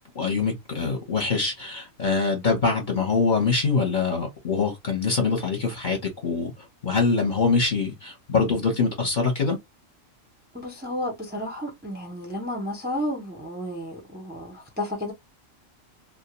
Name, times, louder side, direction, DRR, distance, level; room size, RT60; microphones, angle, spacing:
voice 1, 0.1-6.5 6.8-9.6, left 4 dB, 40° left, 1.0 m, -24 dB
voice 2, 10.5-15.1, left 1 dB, 10° right, 0.6 m, -32 dB
2.3 x 2.2 x 2.9 m
omnidirectional pair, 1.4 m